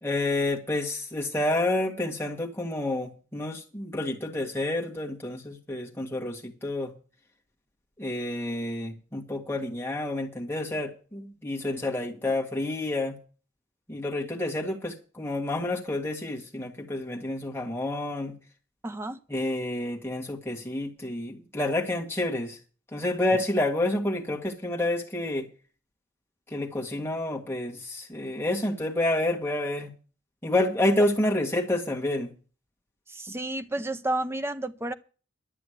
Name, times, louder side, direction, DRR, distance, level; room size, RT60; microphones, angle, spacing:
voice 1, 0.0-6.9 8.0-13.2 13.9-18.3 19.3-22.6 22.9-25.5 26.5-29.9 30.4-32.3, left 1 dB, 10° left, 1.8 m, -29 dB
voice 2, 18.8-19.2 33.1-34.9, right 1 dB, 10° right, 0.5 m, -31 dB
11.5 x 6.8 x 8.0 m
head